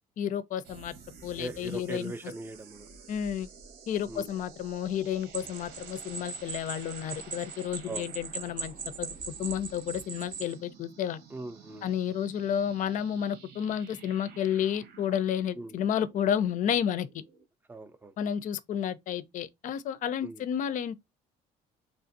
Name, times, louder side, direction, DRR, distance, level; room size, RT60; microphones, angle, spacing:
voice 1, 0.2-0.9 1.2-2.1 3.1-3.5 3.9-11.2 11.8-17.2 18.2-21.0, left 9 dB, 50° left, 0.4 m, -31 dB
sound 1, 0.6-17.5, right 5 dB, 85° right, 1.1 m, -52 dB
voice 2, 1.4-2.9 4.1-4.3 7.9-8.1 11.3-11.9 15.6-15.8 17.7-18.1 20.2-20.4, right 2 dB, 10° right, 0.4 m, -40 dB
sound 2, 5.3-10.6, right 5 dB, 55° right, 0.6 m, -40 dB
3.4 x 2.5 x 2.5 m
cardioid pair, 110°, 17 cm